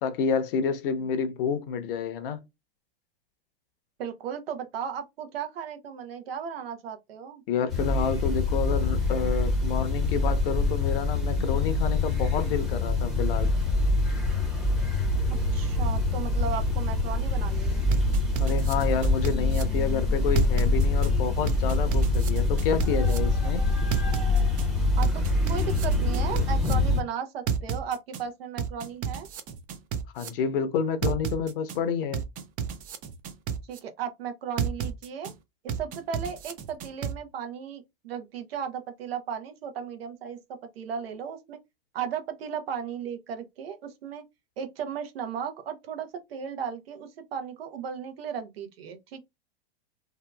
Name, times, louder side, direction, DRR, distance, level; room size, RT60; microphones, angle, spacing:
voice 1, 0.0-2.4 7.5-13.5 18.4-23.6 30.1-32.2, left 6 dB, 60° left, 0.7 m, -29 dB
voice 2, 4.0-7.4 15.5-17.9 25.0-29.3 33.6-35.3 35.6-41.6 41.9-44.2 44.6-49.2, right 7 dB, 70° right, 0.8 m, -35 dB
sound 1, 7.7-27.0, left 2 dB, ahead, 0.8 m, -25 dB
sound 2, 17.9-19.6 20.4-21.1 21.5-23.2 23.9-24.6 25.0-26.7 27.5-28.2 28.6-30.3 31.0-31.8 32.1-33.8 34.6-35.3 35.7-37.1, right 7 dB, 30° right, 0.4 m, -31 dB
2.8 x 2.3 x 2.2 m
hypercardioid pair, 115°, 31 cm